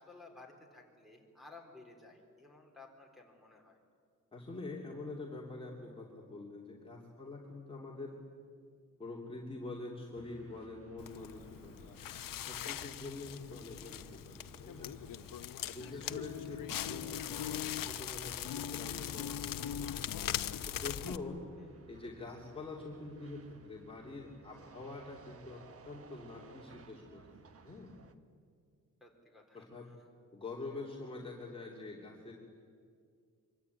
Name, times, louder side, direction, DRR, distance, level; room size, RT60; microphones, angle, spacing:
voice 1, 0.0-3.8 15.8-16.4 21.6-21.8 29.0-29.9, left 3 dB, ahead, -2 dB, 3.9 m, -56 dB
voice 2, 4.3-8.2 9.0-12.0 12.5-15.0 15.7-19.9 20.7-21.5 21.9-27.9 29.5-29.9 30.3-32.4, left 3 dB, 15° left, -3 dB, 2.8 m, -46 dB
sound 1, 10.1-28.1, right 4 dB, 45° right, 1.3 m, -59 dB
Crackle, 11.0-21.2, left 10 dB, 85° left, 0.9 m, -40 dB
25.0 x 23.5 x 9.7 m, 2.2 s
wide cardioid pair, 170°, 33 cm